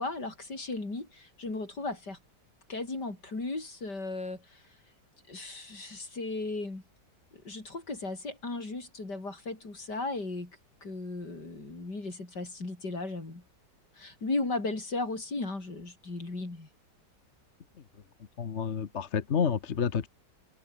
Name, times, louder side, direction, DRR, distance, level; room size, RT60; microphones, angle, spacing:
voice 1, 0.0-2.2 2.7-4.6 5.3-6.8 7.3-13.4 14.0-16.7, left 2 dB, 70° left, 6.1 m, -36 dB
voice 2, 18.4-20.1, left 7 dB, 45° left, 1.3 m, -29 dB
open air
omnidirectional pair, 1.9 m